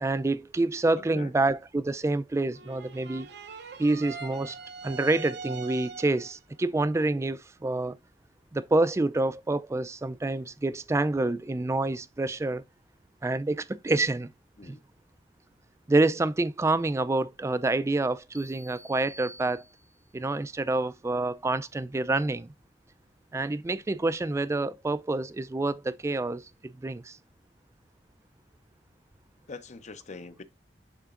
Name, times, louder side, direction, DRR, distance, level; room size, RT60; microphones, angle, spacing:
voice 1, 0.0-3.3 3.8-4.6 4.8-7.9 8.5-12.6 13.2-14.3 14.6-14.7 15.9-19.6 20.1-22.5 23.3-27.2, right 2 dB, 15° right, 0.3 m, -27 dB
sound 1, 2.5-6.4, right 5 dB, 65° right, 0.6 m, -42 dB
sound 2, 18.3-20.2, right 1 dB, 5° left, 0.7 m, -50 dB
voice 2, 29.5-30.4, left 3 dB, 40° left, 0.6 m, -43 dB
10.0 x 3.8 x 2.4 m
head